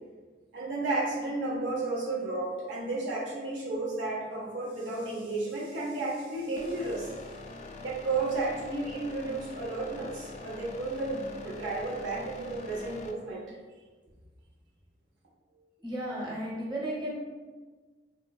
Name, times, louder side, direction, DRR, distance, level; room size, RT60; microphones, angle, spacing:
voice 1, 0.5-7.1 7.8-13.4, right 2 dB, 80° right, -3 dB, 0.6 m, -33 dB
sound 1, 6.6-13.1, left 3 dB, 40° left, 0.3 m, -44 dB
voice 2, 15.5-17.2, equal, 25° right, -6 dB, 0.7 m, -35 dB
3.7 x 2.2 x 2.2 m, 1.4 s
head